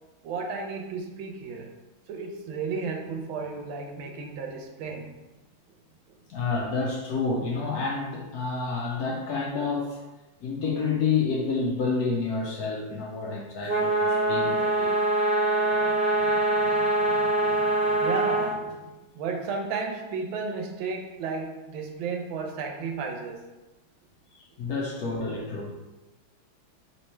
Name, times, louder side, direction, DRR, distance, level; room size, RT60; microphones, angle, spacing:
voice 1, 0.2-1.7 2.1-5.1 6.1-6.2 15.6-23.4, right 4 dB, 80° right, 1.4 m, -34 dB
voice 2, 6.3-10.0 10.4-15.0 24.6-25.7, left 4 dB, 70° left, 0.9 m, -29 dB
sound 1, 13.7-18.5, right 2 dB, 10° right, 0.6 m, -24 dB
3.4 x 3.2 x 4.2 m
omnidirectional pair, 2.3 m